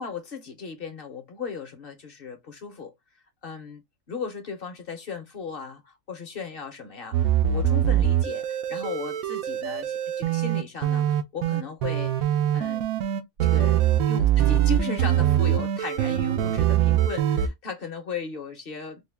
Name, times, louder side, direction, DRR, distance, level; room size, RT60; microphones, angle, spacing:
voice 1, 0.0-2.9 3.4-3.8 4.1-12.8 13.4-19.0, left 5 dB, 50° left, 0.8 m, -36 dB
sound 1, 7.1-17.5, right 11 dB, 85° right, 1.0 m, -23 dB
3.6 x 2.2 x 3.3 m
omnidirectional pair, 1.4 m